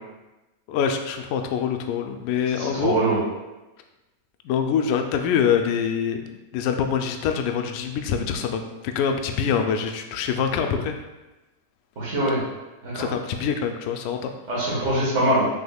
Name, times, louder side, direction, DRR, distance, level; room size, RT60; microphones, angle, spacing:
voice 1, 0.7-2.9 4.4-6.2 6.5-8.6 8.9-11.0 12.9-14.3, left 7 dB, 50° left, 5 dB, 0.4 m, -24 dB
voice 2, 2.5-3.2 12.0-12.4 12.8-13.1 14.5-15.5, right 1 dB, 55° right, -7 dB, 1.4 m, -23 dB
3.4 x 3.3 x 2.3 m, 1.1 s
supercardioid pair, 150°, 0 cm